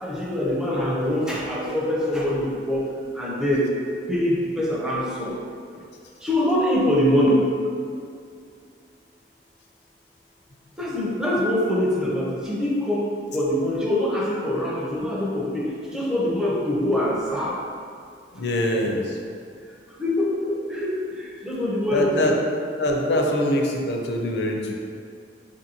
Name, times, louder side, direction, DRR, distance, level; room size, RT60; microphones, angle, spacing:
voice 1, 0.0-3.8 4.1-5.3 6.2-7.5 10.8-17.6 20.0-22.4, left 1 dB, 5° right, -5 dB, 0.5 m, -24 dB
voice 2, 18.3-19.2 21.9-22.4 22.8-24.7, left 1 dB, 65° left, 1 dB, 0.5 m, -23 dB
5.0 x 2.6 x 2.8 m, 2.3 s
head